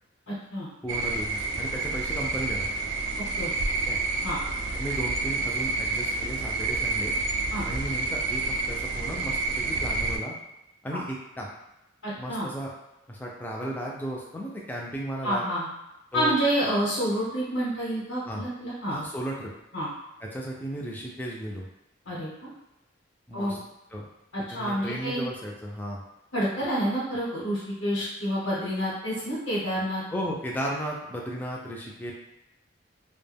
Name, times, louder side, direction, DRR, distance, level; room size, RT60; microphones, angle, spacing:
voice 1, 0.3-0.7 3.4-3.5 4.2-4.4 7.5-7.7 10.9-11.0 12.0-12.5 15.2-15.7 16.1-19.0 19.7-19.9 22.1-22.5 23.3-23.6 24.3-25.2 26.3-30.0, equal, 80° left, -9 dB, 0.9 m, -28 dB
voice 2, 0.8-2.7 3.9-4.0 4.7-7.1 7.6-10.3 10.8-11.5 12.2-12.7 13.1-15.4 16.1-16.4 18.3-18.4 18.9-19.5 20.2-21.7 23.3-23.6 23.9-24.0 24.5-26.0 30.1-32.1, equal, 10° left, -3 dB, 0.3 m, -35 dB
sound 1, 0.9-10.2, right 3 dB, 70° right, 0.3 m, -29 dB
2.1 x 2.1 x 3.3 m, 0.92 s
head